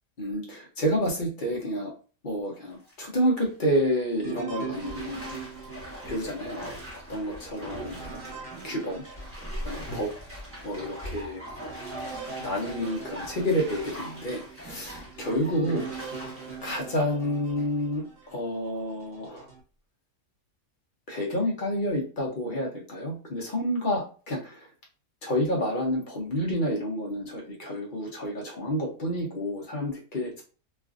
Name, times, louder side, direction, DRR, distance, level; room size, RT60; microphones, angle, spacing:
voice 1, 0.2-1.9 2.2-5.4 6.0-6.6 6.9-8.2 8.6-9.0 9.6-10.1 10.6-11.4 12.4-15.8 16.6-18.0 18.3-19.5 21.1-24.7 25.2-30.4, equal, 45° left, -1 dB, 0.6 m, -29 dB
Bathtub (filling or washing), 2.5-2.9 3.4-3.5 4.7-17.8 18.2-18.3, equal, 10° right, 1.0 m, -41 dB
sound 1, 4.2-10.0 10.5-10.6 11.2-18.4 19.0-19.6, right 6 dB, 75° right, 1.3 m, -42 dB
3.2 x 2.4 x 2.4 m, 0.37 s
omnidirectional pair, 1.8 m